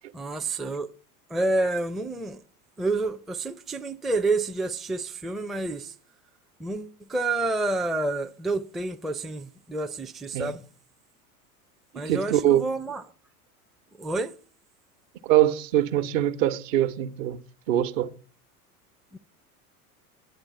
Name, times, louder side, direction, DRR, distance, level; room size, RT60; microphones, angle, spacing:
voice 1, 0.1-0.9 1.3-2.4 2.8-5.9 6.6-10.6 11.9-13.0 14.0-14.3 19.1-19.2, right 2 dB, ahead, 0.5 m, -29 dB
voice 2, 11.9-12.6 15.2-17.4 17.7-18.1, right 12 dB, 60° right, 1.2 m, -23 dB
10.0 x 8.9 x 6.7 m
hypercardioid pair, 90°, 45 cm